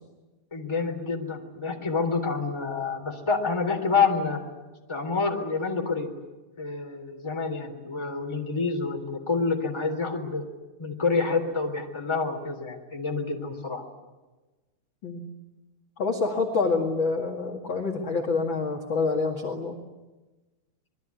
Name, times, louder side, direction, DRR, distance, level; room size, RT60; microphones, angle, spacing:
voice 1, 0.5-4.4 4.9-6.1 6.6-10.4 10.8-13.8, left 4 dB, 10° left, 3 dB, 2.4 m, -28 dB
voice 2, 16.0-19.8, left 4 dB, 40° left, 2 dB, 1.8 m, -27 dB
27.0 x 22.0 x 9.5 m, 1.2 s
omnidirectional pair, 5.3 m